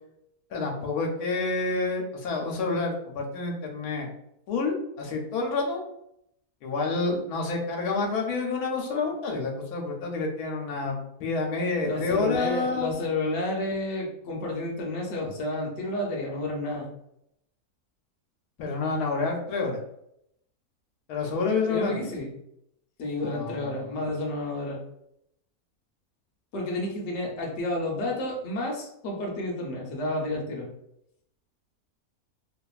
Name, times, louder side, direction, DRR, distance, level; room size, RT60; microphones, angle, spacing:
voice 1, 0.5-4.1 4.5-5.8 6.6-13.1 18.6-19.8 21.1-22.0 23.2-24.0, left 3 dB, 80° left, 1 dB, 1.1 m, -28 dB
voice 2, 11.8-16.9 21.7-22.3 23.0-24.8 26.5-30.7, left 1 dB, 55° left, -1 dB, 0.9 m, -30 dB
2.7 x 2.4 x 2.3 m, 0.77 s
omnidirectional pair, 1.6 m